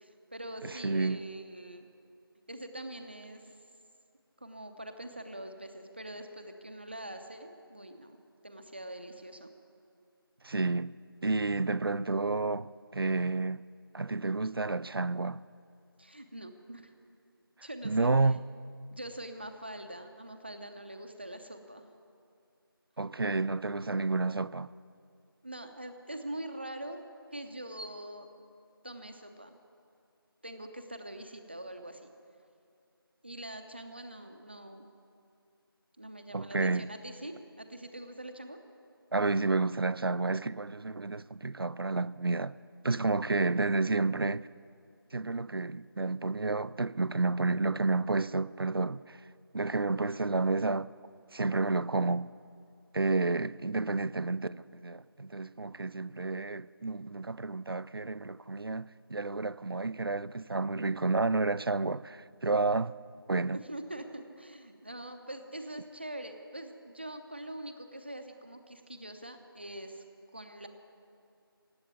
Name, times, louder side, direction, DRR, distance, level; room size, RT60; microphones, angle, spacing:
voice 1, 0.0-1.9 2.5-3.6 4.4-8.2 8.4-9.5 16.0-16.9 17.6-18.1 18.9-21.9 25.4-27.0 27.3-28.3 28.8-29.5 30.4-32.0 33.2-34.9 36.0-38.6 63.5-70.0 70.3-70.7, right 1 dB, 25° right, 0.7 m, -43 dB
voice 2, 0.6-1.2 10.4-10.9 11.2-13.6 13.9-15.4 17.8-18.4 23.0-24.7 36.3-36.9 39.1-42.5 42.8-44.5 45.1-49.2 49.5-50.9 51.3-52.3 52.9-63.0 63.3-63.6, right 3 dB, 70° right, 0.4 m, -30 dB
16.5 x 8.1 x 9.3 m
figure-of-eight pair, 170°, 13 cm